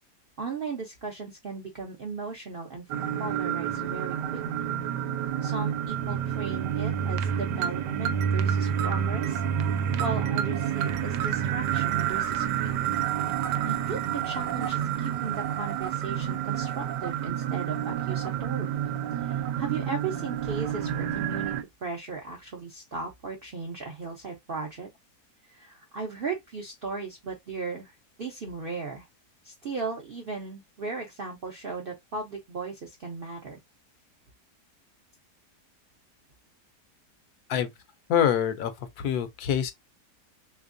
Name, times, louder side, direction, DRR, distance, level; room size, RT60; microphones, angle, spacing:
voice 1, 0.4-2.8 3.2-4.7 5.4-9.4 10.0-12.9 13.6-18.8 19.2-21.5 21.8-24.9 25.4-29.1 29.4-33.6, right 4 dB, 65° right, 0.5 m, -37 dB
sound 1, 2.9-21.6, right 9 dB, 85° right, 1.2 m, -29 dB
voice 2, 38.1-39.7, left 9 dB, 70° left, 1.1 m, -25 dB
3.4 x 3.0 x 2.5 m
omnidirectional pair, 1.8 m